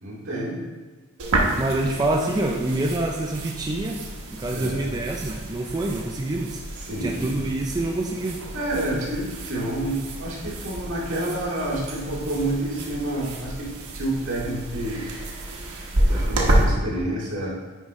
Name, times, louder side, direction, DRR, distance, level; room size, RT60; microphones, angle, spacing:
voice 1, 0.0-0.6 4.5-5.0 6.7-7.5 8.5-15.0 16.1-17.5, right 1 dB, 65° right, -7 dB, 2.2 m, -29 dB
sound 1, 1.2-16.6, right 1 dB, 80° right, 1.1 m, -29 dB
voice 2, 1.6-4.0 4.3-6.6 7.0-8.4, right 2 dB, 20° right, -1 dB, 0.4 m, -26 dB
9.2 x 4.9 x 3.1 m, 1.3 s
head